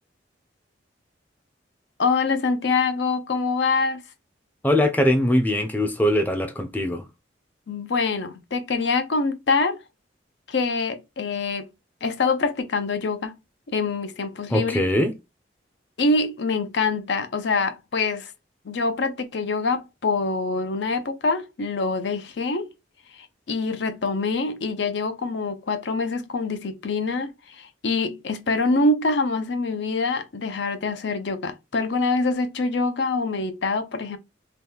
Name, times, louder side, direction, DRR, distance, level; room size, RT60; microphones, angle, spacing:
voice 1, 2.0-4.0 7.7-9.8 10.5-11.7 12.0-13.3 13.7-14.8 16.0-18.3 18.6-22.7 23.1-34.2, left 3 dB, 75° left, 0.5 m, -25 dB
voice 2, 4.6-7.1 14.5-15.1, left 1 dB, 10° left, 0.5 m, -21 dB
2.9 x 2.2 x 3.4 m
head